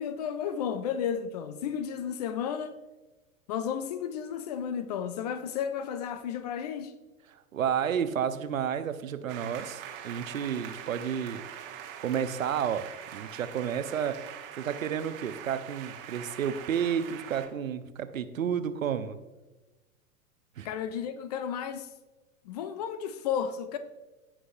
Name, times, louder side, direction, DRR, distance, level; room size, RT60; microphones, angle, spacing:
voice 1, 0.0-2.8 3.5-6.9 20.6-21.9 22.5-23.8, left 8 dB, 30° left, 0.4 m, -33 dB
voice 2, 7.3-11.4 12.0-12.9 13.1-14.2 14.6-19.2 20.6-20.7, right 8 dB, 65° right, 0.8 m, -31 dB
sound 1, 9.3-17.5, right 9 dB, 40° right, 1.1 m, -43 dB
16.0 x 6.2 x 2.6 m
figure-of-eight pair, 95°, 43 cm